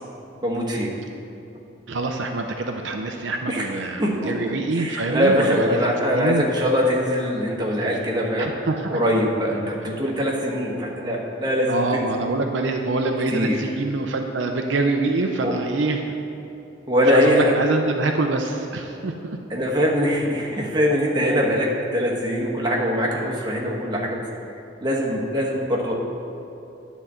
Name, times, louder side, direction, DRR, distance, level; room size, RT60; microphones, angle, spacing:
voice 1, 0.4-0.9 3.5-3.7 4.0-8.5 8.9-12.1 13.3-13.6 15.4-15.5 16.9-17.5 19.5-24.2 24.8-25.9, equal, 20° right, -2 dB, 1.2 m, -22 dB
voice 2, 1.9-6.5 8.4-9.0 9.9-10.0 11.7-16.1 17.1-19.4, right 3 dB, 65° right, 3 dB, 0.5 m, -25 dB
9.9 x 4.1 x 7.3 m, 2.8 s
head